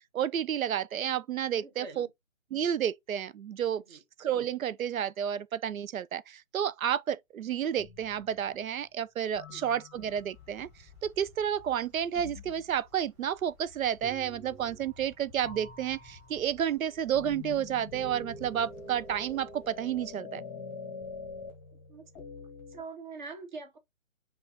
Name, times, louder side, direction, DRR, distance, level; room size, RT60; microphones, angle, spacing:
voice 1, 0.1-2.1 2.5-3.8 4.2-10.7 11.0-20.4, right 9 dB, 85° right, 0.6 m, -31 dB
voice 2, 1.5-2.1 3.9-4.0 9.5-9.6 21.9-22.1 22.7-23.8, right 4 dB, 35° right, 1.0 m, -44 dB
sound 1, 7.8-8.6 9.4-10.4 12.2-12.7 14.0-15.2 15.4-22.8, left 3 dB, 10° left, 0.8 m, -45 dB
sound 2, 9.9-20.1, left 5 dB, 5° right, 1.2 m, -58 dB
5.5 x 2.5 x 3.6 m
hypercardioid pair, 155°, 40 cm